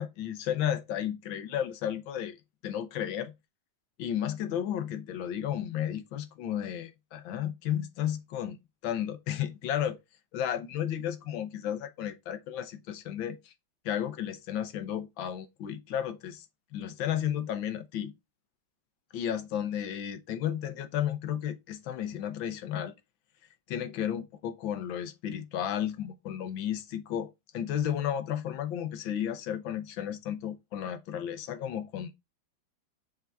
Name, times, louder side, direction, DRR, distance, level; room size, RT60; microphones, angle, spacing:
voice 1, 0.0-2.4 2.6-3.3 4.0-8.6 8.8-10.0 10.3-13.5 13.9-16.5 16.7-18.1 19.1-22.9 23.7-32.1, left 10 dB, 80° left, 1.6 m, -33 dB
5.9 x 3.8 x 4.4 m
omnidirectional pair, 2.1 m